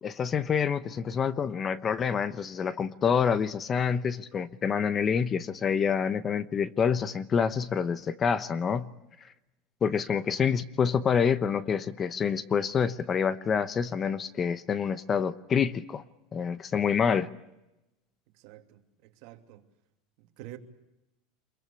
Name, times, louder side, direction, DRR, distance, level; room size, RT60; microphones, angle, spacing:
voice 1, 0.0-8.9 9.8-16.0 16.3-17.3, left 7 dB, 25° left, 14 dB, 0.9 m, -27 dB
voice 2, 18.3-19.7 20.2-20.6, right 15 dB, 60° right, 5 dB, 2.8 m, -48 dB
27.0 x 22.5 x 8.5 m, 0.93 s
supercardioid pair, 145°, 0 cm